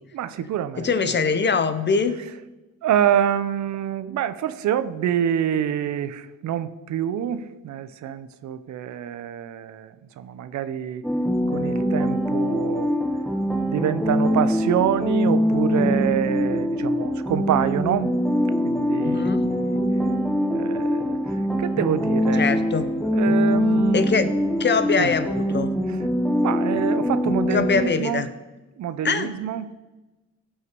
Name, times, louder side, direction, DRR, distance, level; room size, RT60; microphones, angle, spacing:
voice 1, 0.1-0.9 2.8-11.0 11.5-12.9 13.7-18.1 18.6-19.8 20.5-22.4 23.1-24.0 25.0-25.1 25.9-26.0 26.4-28.3 28.8-29.8, right 10 dB, 70° right, 13 dB, 0.7 m, -26 dB
voice 2, 0.8-2.2 19.0-19.5 22.4-22.8 23.9-24.3 24.6-25.7 27.5-28.3 29.0-29.3, left 5 dB, 35° left, 11 dB, 1.0 m, -23 dB
sound 1, 11.0-27.9, equal, ahead, 1.6 m, -23 dB
15.5 x 5.7 x 4.7 m, 1.1 s
cardioid pair, 90°, 30 cm